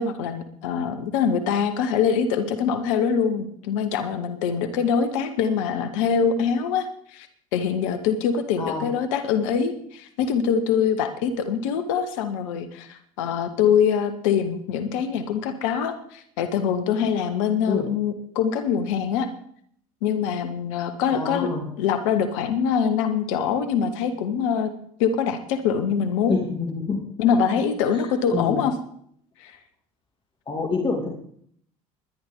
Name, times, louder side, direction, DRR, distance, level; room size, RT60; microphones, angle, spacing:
voice 1, 0.0-7.3 7.5-19.3 20.0-21.5 21.8-24.7 25.0-26.4 27.2-28.7 29.4-29.5, left 7 dB, 60° left, 8 dB, 1.4 m, -24 dB
voice 2, 21.1-21.6 26.3-27.0 27.3-27.6 27.9-28.0 28.3-28.6 30.5-31.1, left 4 dB, 25° left, 0 dB, 2.8 m, -27 dB
21.0 x 11.0 x 3.9 m, 0.65 s
figure-of-eight pair, 65°, 18 cm